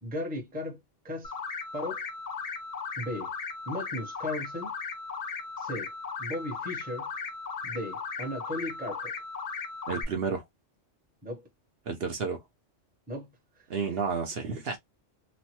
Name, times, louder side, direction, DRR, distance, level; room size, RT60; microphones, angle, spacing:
voice 1, 0.0-1.3 1.7-2.0 3.0-3.3 3.7-4.7 5.6-5.9 6.2-7.1 7.6-9.1 11.2-11.5 13.1-13.9 14.5-14.6, left 1 dB, 10° right, 0.6 m, -36 dB
sound 1, 1.2-10.0, left 5 dB, 50° left, 0.5 m, -37 dB
voice 2, 9.9-10.4 11.9-12.4 13.7-14.8, right 5 dB, 60° right, 0.8 m, -31 dB
3.0 x 2.1 x 2.8 m
omnidirectional pair, 1.3 m